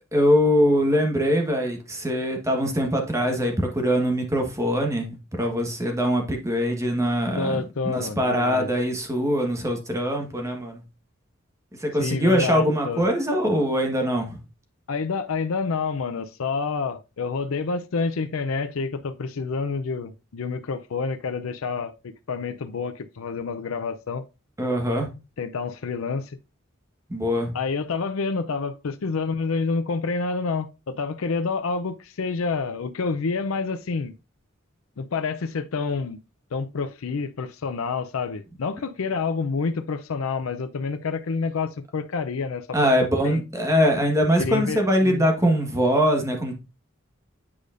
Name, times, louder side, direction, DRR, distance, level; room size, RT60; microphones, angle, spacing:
voice 1, 0.1-10.8 11.8-14.4 24.6-25.1 27.1-27.6 42.7-46.5, equal, 15° right, 1.3 m, -22 dB
voice 2, 7.4-8.7 12.0-13.1 14.9-21.9 22.3-24.2 25.4-26.4 27.5-34.1 35.0-36.2 36.5-42.7 43.0-43.4 44.4-45.2, left 4 dB, 90° left, 0.5 m, -28 dB
8.6 x 4.9 x 2.5 m
head